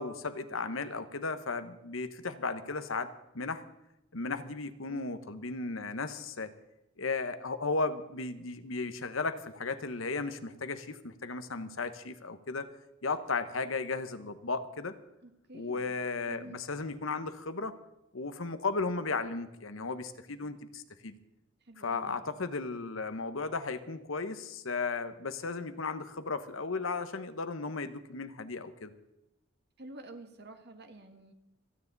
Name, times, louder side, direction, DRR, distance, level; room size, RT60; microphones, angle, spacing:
voice 1, 0.0-3.1 3.3-3.7 4.1-6.5 7.0-12.7 13.0-14.9 15.5-17.7 18.1-21.1 21.8-28.9, left 4 dB, 90° left, 11 dB, 1.1 m, -35 dB
voice 2, 15.2-16.0 16.3-16.6 21.6-22.2 29.8-31.3, right 2 dB, 55° right, 7 dB, 1.6 m, -49 dB
26.0 x 9.7 x 4.1 m, 0.91 s
head